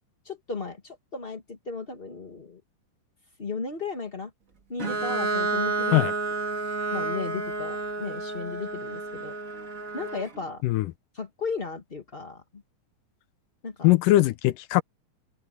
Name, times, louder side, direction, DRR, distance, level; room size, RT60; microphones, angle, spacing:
voice 1, 0.2-2.6 3.4-4.3 4.7-6.1 6.5-9.4 9.9-10.6 11.1-12.6 13.6-13.9, left 4 dB, 30° left, 1.1 m, -35 dB
Bowed string instrument, 4.8-10.4, right 3 dB, 25° right, 2.2 m, -30 dB
voice 2, 13.8-14.8, left 17 dB, 80° left, 2.3 m, -20 dB
open air
omnidirectional pair, 3.8 m